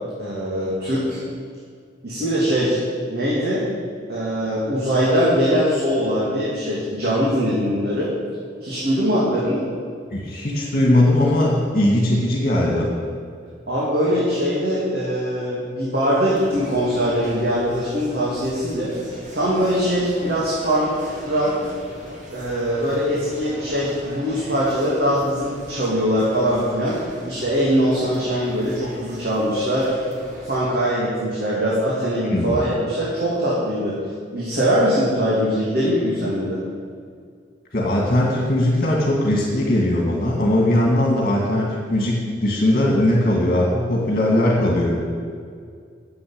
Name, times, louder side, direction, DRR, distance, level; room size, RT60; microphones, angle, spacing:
voice 1, 0.2-1.2 2.0-2.8 3.1-3.6 4.1-8.1 8.6-9.6 13.7-18.9 19.3-21.7 22.3-27.0 27.2-29.9 30.5-34.0 34.3-36.6, equal, 60° right, -7 dB, 2.7 m, -22 dB
voice 2, 10.1-12.9 32.2-32.6 37.7-44.9, left 1 dB, 45° left, -2 dB, 2.3 m, -19 dB
sound 1, 16.3-30.6, equal, 45° right, 2.4 m, -40 dB
9.9 x 7.7 x 8.9 m, 2.2 s
head